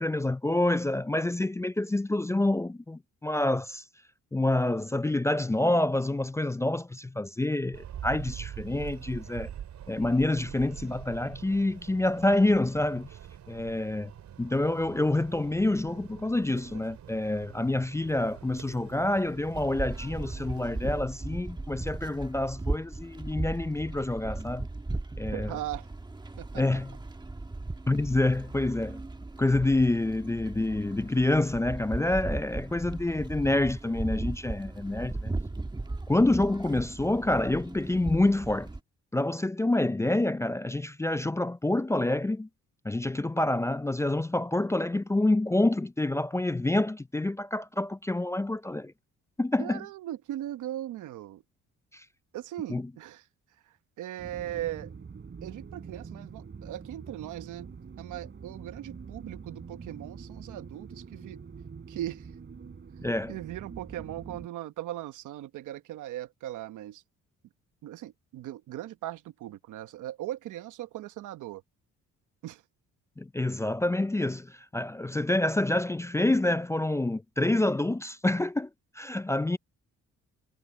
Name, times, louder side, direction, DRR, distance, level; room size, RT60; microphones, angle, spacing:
voice 1, 0.0-3.8 4.3-9.5 9.9-13.1 13.5-14.1 14.4-24.7 25.2-25.5 26.6-26.9 27.9-29.0 29.4-35.3 36.1-38.7 39.1-42.5 42.8-48.9 49.4-49.8 51.9-52.0 52.7-52.8 63.0-63.3 73.2-78.7 79.0-79.6, left 2 dB, 10° left, 0.4 m, -27 dB
sound 1, 7.7-21.0, right 10 dB, 65° right, 3.7 m, -45 dB
sound 2, 19.5-38.8, right 2 dB, 15° right, 1.3 m, -37 dB
voice 2, 25.3-25.9 26.4-26.6 49.6-51.4 52.3-53.2 53.7-54.9 55.4-57.7 58.0-61.4 61.9-62.3 63.3-67.0 67.8-71.6 72.4-72.6, right 13 dB, 80° right, 1.1 m, -39 dB
sound 3, 54.2-64.5, right 5 dB, 40° right, 5.3 m, -45 dB
cardioid pair, 90°, 30 cm